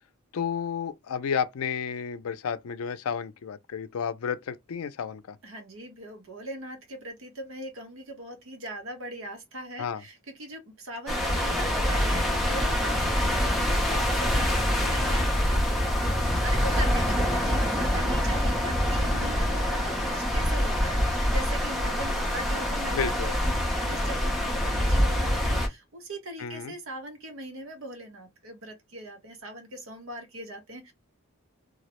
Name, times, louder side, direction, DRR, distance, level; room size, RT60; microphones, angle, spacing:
voice 1, 0.3-5.4 9.8-10.0 22.9-23.3 26.4-26.7, left 7 dB, 75° left, 0.4 m, -31 dB
voice 2, 5.4-30.9, right 1 dB, 65° right, 0.9 m, -40 dB
sound 1, 11.1-25.7, equal, ahead, 0.6 m, -25 dB
2.3 x 2.0 x 2.9 m
head